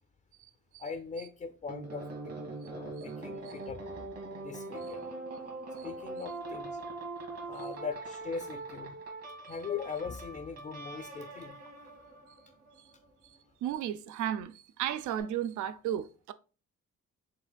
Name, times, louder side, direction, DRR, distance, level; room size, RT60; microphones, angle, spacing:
voice 1, 0.8-2.3 2.7-5.1 5.8-6.8 7.4-9.0 9.5-11.6, left 5 dB, 25° left, 0.4 m, -40 dB
sound 1, 1.7-13.1 14.9-15.2, right 2 dB, 55° right, 1.6 m, -42 dB
voice 2, 13.6-16.3, right 10 dB, 75° right, 0.5 m, -34 dB
4.8 x 3.5 x 2.2 m
cardioid pair, 90°, 30 cm